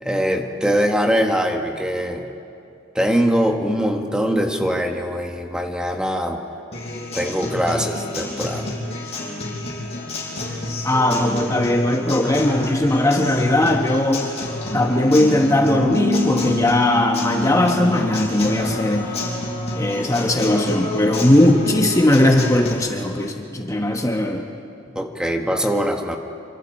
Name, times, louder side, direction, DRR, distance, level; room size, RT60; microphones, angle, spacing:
voice 1, 0.0-2.2 2.9-6.4 7.1-8.8 24.9-26.2, equal, 5° right, 3 dB, 1.3 m, -22 dB
Acoustic guitar, 6.7-22.7, left 1 dB, 30° left, 5.8 m, -29 dB
voice 2, 10.8-14.3 14.7-19.2 19.7-24.4, left 1 dB, 15° left, 2 dB, 1.2 m, -18 dB
Bass guitar, 15.8-22.0, left 5 dB, 20° right, 7.6 m, -30 dB
27.5 x 25.5 x 4.3 m, 2.6 s
head